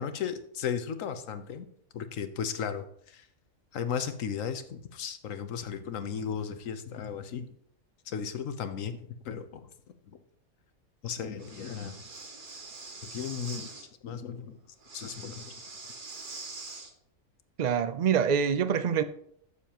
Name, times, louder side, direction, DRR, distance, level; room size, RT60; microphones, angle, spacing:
voice 1, 0.0-1.7 1.9-3.3 3.7-7.5 8.1-9.0 9.2-9.7 10.1-10.2 11.0-12.0 13.1-13.7 14.0-14.6 14.9-15.5, left 7 dB, 70° left, 1.2 m, -35 dB
Breathing, 11.4-13.9 14.8-16.9, right 3 dB, 40° right, 1.2 m, -44 dB
voice 2, 17.6-19.0, right 7 dB, 65° right, 0.4 m, -25 dB
14.5 x 6.9 x 3.0 m
omnidirectional pair, 1.4 m